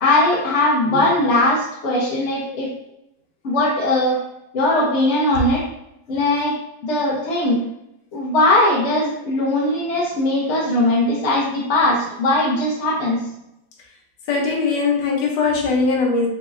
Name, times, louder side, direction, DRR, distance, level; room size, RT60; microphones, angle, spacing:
voice 1, 0.0-2.7 3.4-4.2 4.5-5.7 6.1-6.6 6.8-7.6 8.1-13.2, left 2 dB, 55° left, -5 dB, 0.9 m, -19 dB
voice 2, 14.3-16.3, left 4 dB, 85° left, -1 dB, 1.4 m, -20 dB
3.9 x 2.8 x 2.5 m, 0.83 s
omnidirectional pair, 1.9 m